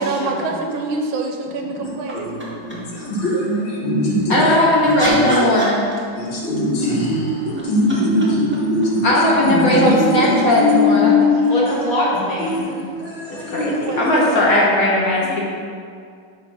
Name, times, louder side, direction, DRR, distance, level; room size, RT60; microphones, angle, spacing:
voice 1, 0.0-2.3 6.9-7.4 10.0-12.2 13.3-14.6, right 3 dB, 80° right, 2 dB, 1.5 m, -28 dB
sound 1, 2.1-3.0 4.4-6.3 7.4-10.0 12.0-12.1, right 1 dB, 15° right, 0.5 m, -31 dB
voice 2, 2.2-4.5 4.8-5.5 6.2-9.0 9.4-11.7 12.4-14.1, left 2 dB, 65° left, -5 dB, 2.0 m, -20 dB
voice 3, 4.3-5.8 9.0-11.1 11.5-12.6 13.3-15.5, left 1 dB, 50° left, -4 dB, 1.2 m, -18 dB
7.9 x 2.8 x 6.0 m, 2.2 s
omnidirectional pair, 2.3 m